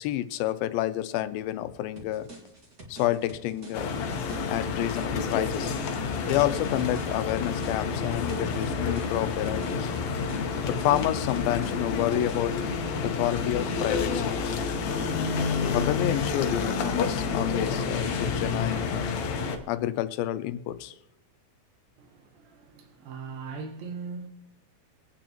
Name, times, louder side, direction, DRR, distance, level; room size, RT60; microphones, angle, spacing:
voice 1, 0.0-2.3 2.9-3.9 4.5-5.8 6.2-9.9 10.7-12.5 13.0-14.6 15.7-19.1 19.7-21.0, left 13 dB, 90° left, 2.4 m, -29 dB
sound 1, 2.0-12.6, right 2 dB, 35° right, 1.6 m, -48 dB
sound 2, 3.7-19.6, left 5 dB, 65° left, 1.9 m, -29 dB
voice 2, 22.0-24.3, right 5 dB, 85° right, 2.9 m, -40 dB
23.0 x 9.0 x 2.9 m
omnidirectional pair, 4.1 m